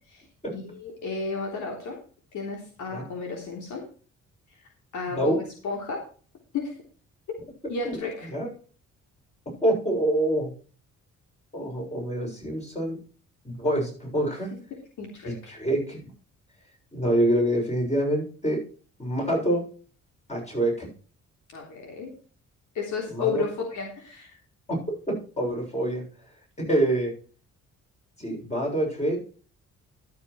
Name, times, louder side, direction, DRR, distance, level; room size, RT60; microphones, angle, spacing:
voice 1, 0.5-2.0 2.3-3.8 4.9-6.0 6.5-6.7 7.7-8.3 15.0-15.5 21.5-22.1 22.7-24.4, left 4 dB, 75° left, 0 dB, 3.4 m, -32 dB
voice 2, 9.6-10.5 11.5-13.0 13.4-14.5 15.3-16.0 16.9-18.6 19.0-19.6 20.3-20.9 23.1-23.4 24.7-24.8 25.1-26.0 26.6-27.1 28.2-29.2, right 1 dB, 20° left, -1 dB, 6.9 m, -26 dB
12.0 x 7.1 x 4.6 m, 0.40 s
cardioid pair, 90°, 30 cm